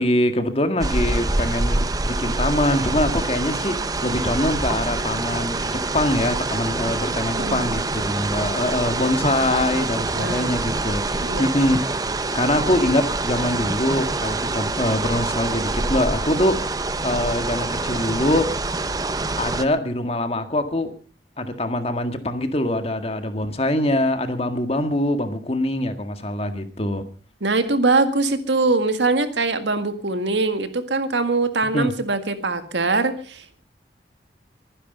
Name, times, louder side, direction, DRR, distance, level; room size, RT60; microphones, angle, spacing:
voice 1, 0.0-11.9 12.2-16.7 17.0-18.5 19.4-20.9 21.4-27.1 31.7-31.9, left 1 dB, 35° left, 8 dB, 1.9 m, -23 dB
sound 1, 0.8-19.7, right 2 dB, 20° right, 0.8 m, -25 dB
voice 2, 7.3-7.7 10.1-10.6 11.2-11.6 27.4-33.6, right 3 dB, 90° right, 9 dB, 1.8 m, -22 dB
23.5 x 10.0 x 5.5 m, 0.41 s
head